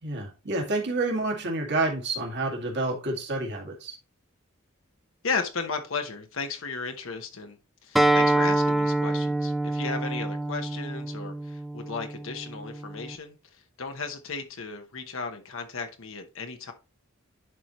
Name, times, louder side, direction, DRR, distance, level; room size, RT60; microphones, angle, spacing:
voice 1, 0.0-4.0, right 2 dB, 55° right, 2.1 m, -29 dB
voice 2, 5.2-7.6 7.8-16.7, left 4 dB, 65° left, 1.0 m, -35 dB
Acoustic guitar, 8.0-13.2, right 1 dB, ahead, 0.6 m, -26 dB
11.0 x 4.4 x 3.1 m
head